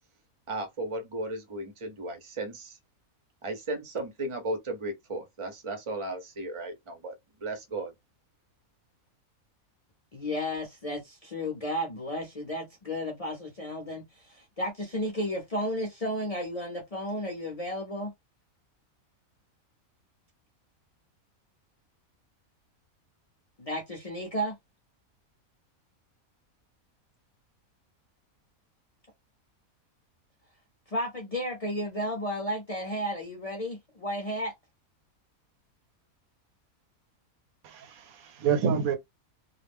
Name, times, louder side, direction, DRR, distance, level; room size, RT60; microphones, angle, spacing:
voice 1, 0.5-2.8 3.4-7.1 7.4-7.9, right 2 dB, 35° right, 0.5 m, -35 dB
voice 2, 10.1-18.1 23.6-24.6 30.9-34.5, equal, 40° left, 0.5 m, -33 dB
voice 3, 37.6-39.0, right 7 dB, 80° right, 1.1 m, -28 dB
2.4 x 2.0 x 3.4 m
omnidirectional pair, 1.5 m